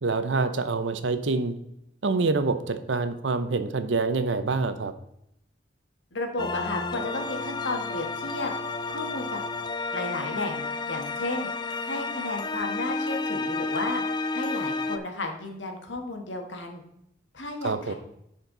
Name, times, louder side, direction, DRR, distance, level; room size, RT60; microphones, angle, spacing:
voice 1, 0.0-1.5 2.0-4.9 17.6-17.9, right 3 dB, 85° right, 10 dB, 0.8 m, -26 dB
voice 2, 6.1-8.5 8.9-9.4 9.9-11.5 11.8-14.0 14.3-16.8 17.3-17.9, left 2 dB, 80° left, 3 dB, 1.5 m, -33 dB
sound 1, 6.4-15.0, left 3 dB, 25° left, 0.4 m, -31 dB
10.0 x 4.5 x 3.9 m, 0.79 s
head